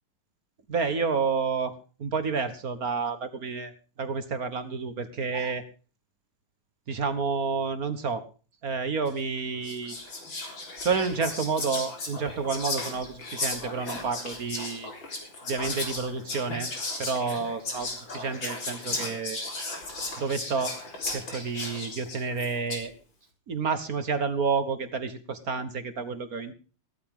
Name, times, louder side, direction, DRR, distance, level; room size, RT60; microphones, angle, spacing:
voice 1, 0.7-1.7 2.0-3.7 4.0-5.6 6.9-8.2 8.6-10.0 10.8-14.9 15.5-16.7 17.0-19.4 20.2-20.7 21.1-22.9 23.5-26.5, right 5 dB, 45° right, 11 dB, 1.6 m, -29 dB
Whispering, 9.1-9.3 9.6-22.9, left 2 dB, 60° left, 4.5 m, -35 dB
16.5 x 14.0 x 3.6 m, 0.36 s
omnidirectional pair, 2.4 m